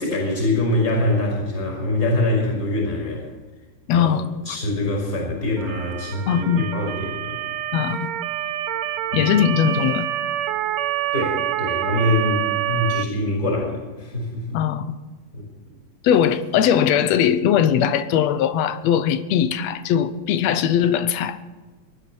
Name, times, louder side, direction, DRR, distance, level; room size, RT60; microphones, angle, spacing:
voice 1, 0.0-3.3 3.9-4.1 4.5-7.4 9.1-9.2 11.1-14.6 15.3-15.5, left 1 dB, 25° left, 5.4 m, -24 dB
voice 2, 3.9-4.2 6.3-6.7 7.7-8.1 9.1-10.1 14.5-14.9 16.0-21.4, left 9 dB, 70° left, 1.8 m, -20 dB
Motor vehicle (road) / Siren, 5.6-13.0, right 12 dB, 75° right, 1.9 m, -27 dB
19.5 x 12.5 x 4.5 m
omnidirectional pair, 3.4 m